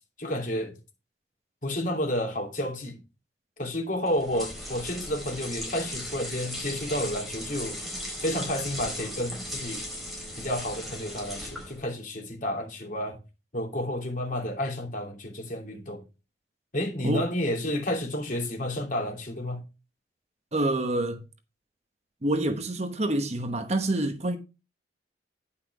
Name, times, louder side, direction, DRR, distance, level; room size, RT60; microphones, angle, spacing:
voice 1, 0.2-0.7 1.6-3.0 3.6-7.8 8.2-9.8 10.4-13.2 13.5-16.0 16.7-19.6, left 1 dB, 50° left, 2.9 m, -31 dB
sound 1, 4.1-11.9, left 1 dB, ahead, 4.2 m, -37 dB
voice 2, 20.5-21.2 22.2-24.4, right 1 dB, 40° right, 1.0 m, -27 dB
10.0 x 5.8 x 4.8 m
head